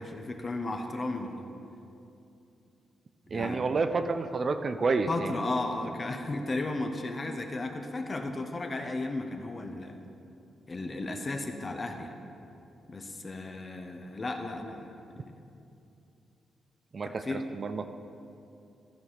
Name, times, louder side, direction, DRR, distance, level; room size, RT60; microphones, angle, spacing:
voice 1, 0.0-1.4 3.3-3.6 5.1-10.0 10.7-12.1 12.9-14.9 17.0-17.5, left 2 dB, 35° left, 4 dB, 0.9 m, -34 dB
voice 2, 3.3-5.3 16.9-17.9, right 4 dB, 45° right, 9 dB, 0.5 m, -29 dB
13.5 x 4.9 x 5.6 m, 2.7 s
cardioid pair, 75°, 0 cm